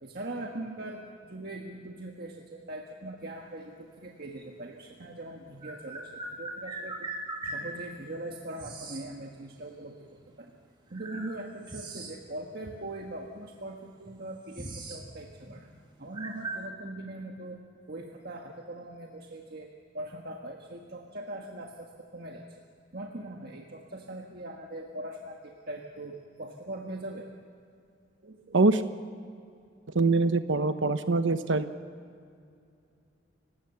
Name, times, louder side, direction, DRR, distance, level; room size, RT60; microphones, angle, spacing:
voice 1, 0.0-7.1 7.4-10.5 10.9-15.7 16.0-19.7 19.9-22.6 22.9-27.3 28.2-28.6, right 1 dB, 55° right, 1 dB, 1.6 m, -41 dB
sound 1, 4.4-4.5 5.6-7.7 8.6-9.1 10.2-10.3 10.9-12.3 12.6-12.8 13.6-13.7 14.0-15.1 15.3-15.6 16.1-16.7, right 2 dB, 25° right, 2.0 m, -39 dB
voice 2, 29.9-31.7, right 3 dB, 90° right, 10 dB, 0.9 m, -24 dB
30.0 x 17.0 x 7.0 m, 2.4 s
head